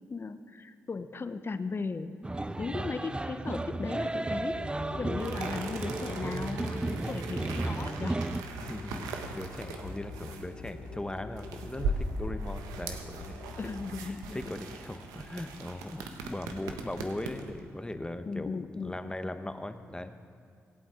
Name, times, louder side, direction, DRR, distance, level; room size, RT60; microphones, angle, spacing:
voice 1, 0.1-2.2 2.6-8.2 13.6-14.6 18.3-19.0, left 4 dB, 40° left, 11 dB, 0.8 m, -37 dB
sound 1, 2.2-8.4, right 2 dB, 15° right, 0.4 m, -34 dB
voice 2, 2.5-2.9 8.6-13.5 14.3-18.5 18.8-20.2, left 1 dB, 15° left, 9 dB, 1.1 m, -39 dB
sound 2, 4.5-13.9, left 3 dB, 85° left, 1.4 m, -45 dB
sound 3, 5.2-17.6, right 3 dB, 80° right, 1.1 m, -39 dB
23.5 x 8.9 x 3.8 m, 2.3 s
hypercardioid pair, 40°, 6 cm